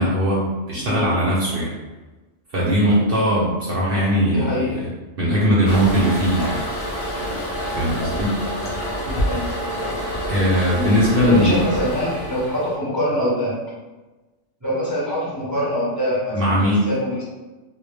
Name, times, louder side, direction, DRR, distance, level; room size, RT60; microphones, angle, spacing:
voice 1, 0.0-1.7 2.5-4.9 5.2-6.6 7.8-8.4 10.3-11.6 16.3-16.9, equal, 60° right, -7 dB, 0.7 m, -19 dB
voice 2, 4.2-4.8 9.0-9.5 10.7-10.9 11.2-13.6 14.6-17.2, equal, 20° right, -9 dB, 0.6 m, -24 dB
Toilet flush, 5.6-12.7, equal, 50° left, 0.7 m, -27 dB
2.1 x 2.1 x 3.2 m, 1.2 s
omnidirectional pair, 1.3 m